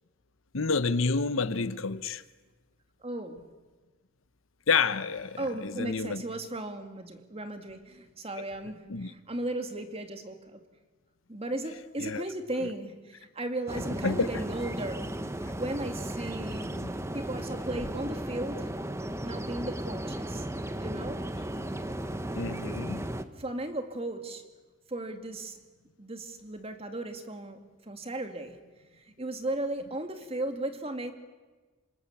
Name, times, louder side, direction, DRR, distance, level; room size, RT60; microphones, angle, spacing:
voice 1, 0.5-2.2 4.7-6.2 8.9-9.1 12.0-12.2 14.0-14.3 16.8-16.9 22.4-23.0, left 4 dB, 75° left, 1.0 m, -29 dB
voice 2, 3.0-3.4 5.4-10.6 11.3-15.0 15.5-16.8 17.1-18.7 19.2-20.5 20.8-21.3 23.4-24.4 24.9-25.6 26.0-28.6 28.9-31.1, right 1 dB, 30° right, 2.2 m, -36 dB
sound 1, 13.7-23.2, right 1 dB, 15° right, 1.0 m, -35 dB
27.5 x 25.5 x 7.2 m
head